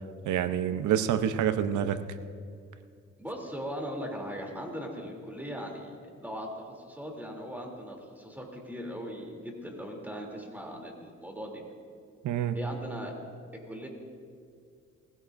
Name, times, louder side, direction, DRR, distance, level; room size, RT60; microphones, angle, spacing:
voice 1, 0.2-2.0 12.2-12.6, right 9 dB, 75° right, 11 dB, 0.8 m, -27 dB
voice 2, 3.2-6.0 6.2-11.6 12.5-13.1 13.7-13.9, equal, 5° right, 0 dB, 3.0 m, -39 dB
21.0 x 16.0 x 2.6 m, 2.3 s
cardioid pair, 90°, 30 cm